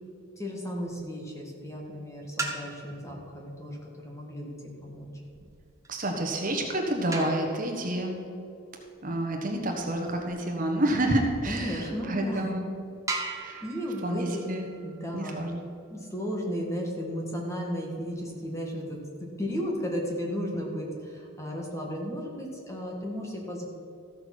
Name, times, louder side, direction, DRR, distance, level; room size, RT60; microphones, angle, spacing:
voice 1, 0.4-4.5 4.8-5.1 11.4-12.6 13.1-14.4 14.8-15.4 15.9-23.7, equal, 15° left, -1 dB, 1.8 m, -34 dB
sound 1, 0.9-1.3 2.2-3.1 4.7-11.2 11.9-12.0 12.4-12.5 13.1-15.7 17.8-18.8, right 2 dB, 15° right, 1.1 m, -40 dB
voice 2, 5.9-8.2 9.0-12.7 13.4-13.6 14.0-14.7 15.1-15.6, right 1 dB, 40° right, 2 dB, 1.3 m, -29 dB
14.5 x 6.9 x 6.0 m, 2.7 s
head